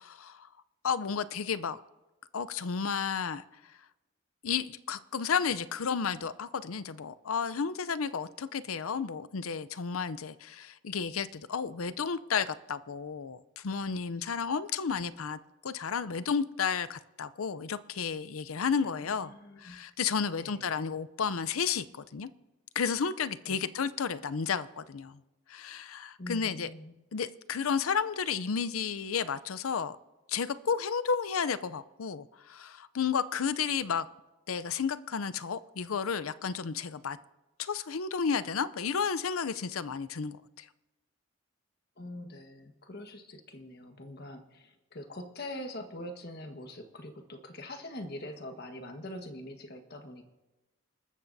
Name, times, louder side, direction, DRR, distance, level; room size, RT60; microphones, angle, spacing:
voice 1, 0.1-0.5 0.8-1.8 2.3-3.4 4.4-19.3 19.6-21.8 22.1-22.3 22.8-25.2 25.5-26.7 27.1-30.0 30.3-34.1 34.5-37.2 37.6-40.7, left 6 dB, 85° left, 0.6 m, -32 dB
voice 2, 19.0-19.8 20.3-20.7 23.4-23.7 26.2-26.9 42.0-50.2, left 1 dB, 50° left, 1.4 m, -43 dB
28.5 x 13.5 x 2.7 m
head